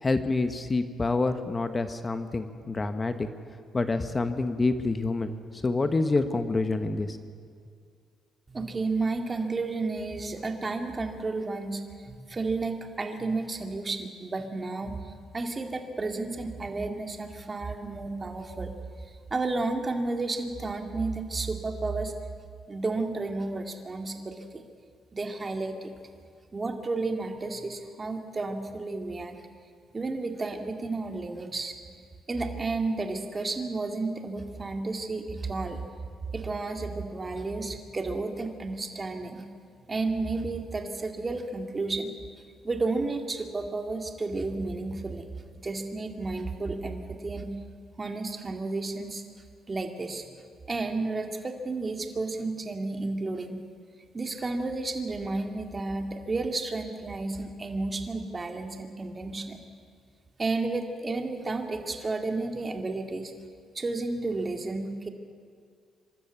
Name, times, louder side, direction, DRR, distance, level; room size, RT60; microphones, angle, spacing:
voice 1, 0.0-3.3 3.7-7.2, left 3 dB, 25° left, 9 dB, 1.2 m, -27 dB
voice 2, 8.5-18.7 19.0-22.1 22.7-24.6 25.1-25.9 26.5-29.4 29.9-32.0 32.3-35.9 36.3-39.4 39.9-42.2 42.6-45.2 45.5-47.5 48.0-49.2 49.7-50.3 50.7-53.6 54.1-59.6 60.4-63.3 63.7-65.1, right 3 dB, 30° right, 4 dB, 2.1 m, -32 dB
25.0 x 13.0 x 8.2 m, 2.1 s
cardioid pair, 90°, 0 cm